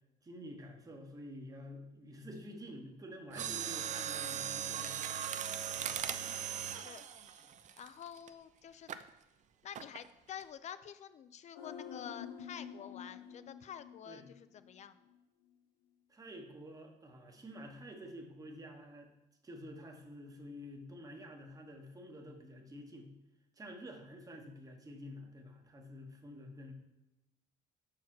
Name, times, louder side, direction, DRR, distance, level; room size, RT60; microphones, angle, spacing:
voice 1, 0.2-4.9 14.1-14.3 16.1-19.1 19.4-23.1 23.6-26.7, equal, 20° right, 2 dB, 1.2 m, -49 dB
Mechanisms, 3.3-8.3 8.9-9.1 9.7-10.1 10.4-10.5, right 9 dB, 45° right, 0.5 m, -39 dB
voice 2, 6.1-7.0 7.4-7.5 7.8-9.0 9.6-15.0, left 9 dB, 45° left, 13 dB, 0.5 m, -49 dB
sound 1, 11.5-14.8 15.1-15.2, left 8 dB, 85° left, 1.1 m, -48 dB
5.9 x 4.8 x 5.9 m, 0.96 s
cardioid pair, 110°, 17 cm